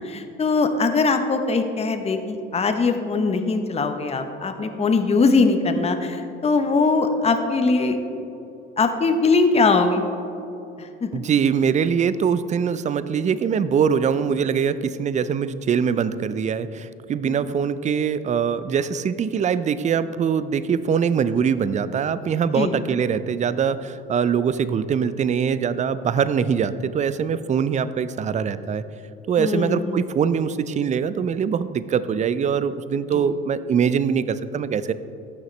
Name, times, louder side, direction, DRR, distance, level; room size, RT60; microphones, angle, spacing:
voice 1, 0.0-8.0 8.8-10.1 10.8-11.3 17.2-17.4 22.5-22.7 29.4-30.1 33.1-33.3, left 4 dB, 20° left, 7 dB, 0.8 m, -21 dB
voice 2, 11.1-28.8 29.3-34.9, right 7 dB, 25° right, 14 dB, 0.4 m, -23 dB
14.5 x 6.3 x 3.2 m, 2.8 s
hypercardioid pair, 75°, 29 cm